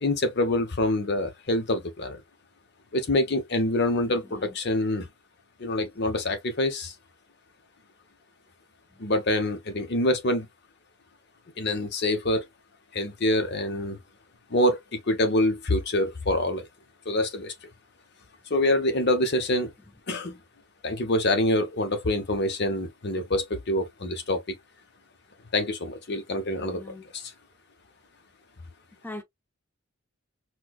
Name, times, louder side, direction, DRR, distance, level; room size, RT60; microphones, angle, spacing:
voice 1, 0.0-2.2 2.9-5.1 5.6-6.9 9.0-10.5 11.6-12.4 12.9-14.0 14.5-16.7 17.0-17.5 18.5-19.7 20.1-20.4 20.8-24.4 25.5-26.8 27.1-27.3, left 1 dB, 55° left, 0.9 m, -26 dB
voice 2, 26.6-27.1 29.0-29.2, left 2 dB, 10° left, 0.7 m, -41 dB
4.5 x 2.3 x 2.3 m
head